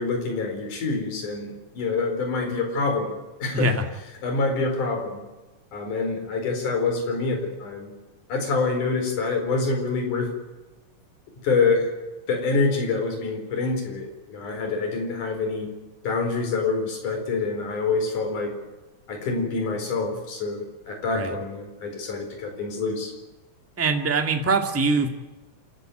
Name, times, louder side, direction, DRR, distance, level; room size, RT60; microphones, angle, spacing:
voice 1, 0.0-3.1 3.4-3.7 4.2-5.2 5.7-7.9 8.3-10.3 11.4-11.9 12.3-15.7 16.0-18.5 19.1-23.1, left 3 dB, 65° left, 5 dB, 5.9 m, -26 dB
voice 2, 3.5-3.8 21.1-21.3 23.8-25.1, right 3 dB, 5° right, 4 dB, 1.3 m, -23 dB
27.5 x 14.0 x 9.2 m, 1.1 s
omnidirectional pair, 3.8 m